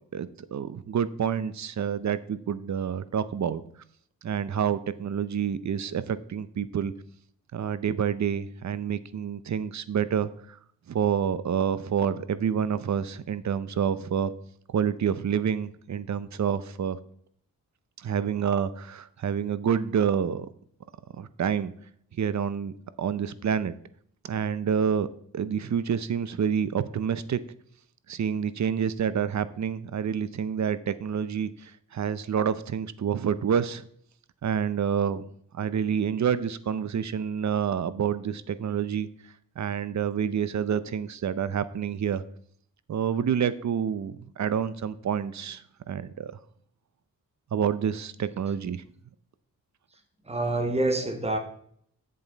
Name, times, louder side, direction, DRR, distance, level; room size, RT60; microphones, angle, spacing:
voice 1, 0.1-3.6 4.2-6.9 7.5-10.6 10.9-14.3 14.7-17.0 18.0-20.5 21.2-21.7 22.2-23.7 24.2-25.1 25.3-27.4 28.1-33.9 34.4-35.3 35.5-39.1 39.6-42.2 42.9-46.3 47.5-48.8, right 8 dB, 55° right, 15 dB, 0.7 m, -28 dB
voice 2, 50.3-51.4, right 2 dB, 20° right, 6 dB, 1.5 m, -26 dB
7.9 x 7.4 x 4.0 m, 0.63 s
cardioid pair, 85°, 34 cm